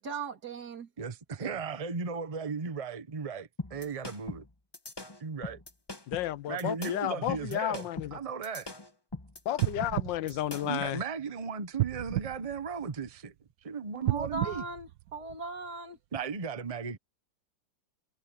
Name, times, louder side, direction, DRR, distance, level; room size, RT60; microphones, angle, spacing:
voice 1, 0.0-0.9 14.0-16.0, right 3 dB, 55° right, 3.6 m, -38 dB
voice 2, 1.0-4.4 5.2-5.6 6.5-8.7 10.6-13.3 13.7-14.6 16.1-17.0, right 5 dB, 25° right, 0.9 m, -36 dB
sound 1, 3.6-10.8, left 2 dB, 15° left, 1.1 m, -42 dB
voice 3, 6.1-8.2 9.4-11.0, left 12 dB, 80° left, 1.4 m, -32 dB
sound 2, 9.6-11.2 11.7-13.3 14.0-15.7 16.2-16.3, right 16 dB, 75° right, 0.9 m, -34 dB
omnidirectional pair, 2.0 m